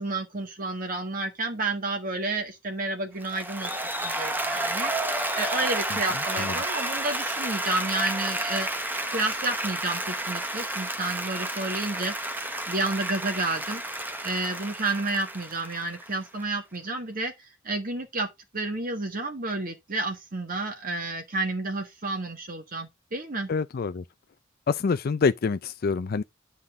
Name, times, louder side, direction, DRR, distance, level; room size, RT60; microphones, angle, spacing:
voice 1, 0.0-3.7 4.0-8.7 9.1-12.3 12.7-13.8 14.2-23.5, right 2 dB, 45° right, 1.5 m, -31 dB
Applause, 3.2-16.4, right 1 dB, 10° right, 0.9 m, -31 dB
voice 2, 23.5-24.0 24.7-26.2, left 5 dB, 50° left, 0.4 m, -26 dB
9.7 x 5.6 x 3.6 m
head